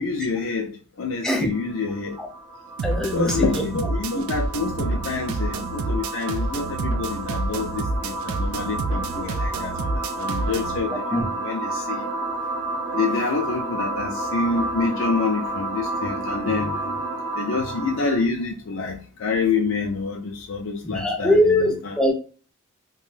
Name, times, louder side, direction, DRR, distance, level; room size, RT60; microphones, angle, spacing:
voice 1, 0.0-2.2 3.1-11.0 11.4-12.1 12.9-21.9, left 4 dB, 70° left, 0.4 m, -27 dB
sound 1, 1.5-18.2, right 2 dB, 50° right, 0.9 m, -31 dB
voice 2, 2.8-3.5 4.1-4.2 11.1-11.3 20.8-22.1, left 1 dB, 5° left, 0.5 m, -21 dB
sound 2, 2.8-10.8, right 3 dB, 85° right, 0.3 m, -28 dB
2.5 x 2.2 x 3.2 m
head